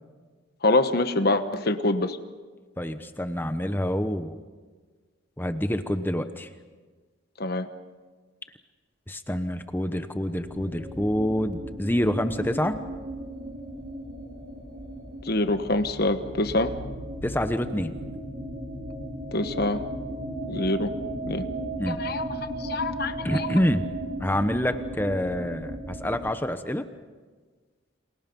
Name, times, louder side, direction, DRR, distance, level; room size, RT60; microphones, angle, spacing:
voice 1, 0.6-2.2 7.4-7.7 15.2-16.7 19.3-19.8 20.5-20.9 21.3-21.5 21.9-22.2 22.6-23.5, left 2 dB, 50° left, 9 dB, 1.2 m, -25 dB
voice 2, 2.8-4.4 5.4-6.5 9.1-12.8 17.2-17.9 21.8-22.0 23.2-23.9 24.2-26.8, equal, 10° left, 9 dB, 0.9 m, -27 dB
sound 1, 10.4-26.3, right 1 dB, 40° right, 2.5 m, -36 dB
30.0 x 27.0 x 5.4 m, 1.4 s
head